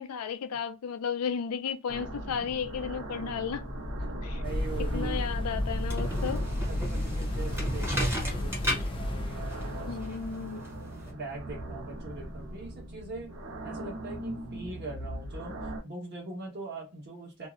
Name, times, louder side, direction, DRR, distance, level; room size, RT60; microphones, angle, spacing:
voice 1, 0.0-3.6 4.2-4.4 4.9-6.4 9.9-10.6, left 7 dB, 90° left, 0.4 m, -34 dB
sound 1, 1.9-15.8, right 1 dB, 70° right, 0.8 m, -39 dB
voice 2, 4.3-5.2 6.7-10.0 10.5-13.4 13.6-17.5, right 3 dB, 50° right, 1.1 m, -42 dB
sound 2, 4.4-10.7, left 1 dB, 25° left, 0.3 m, -33 dB
sound 3, 5.6-11.1, equal, 10° right, 0.8 m, -35 dB
2.6 x 2.1 x 2.4 m
head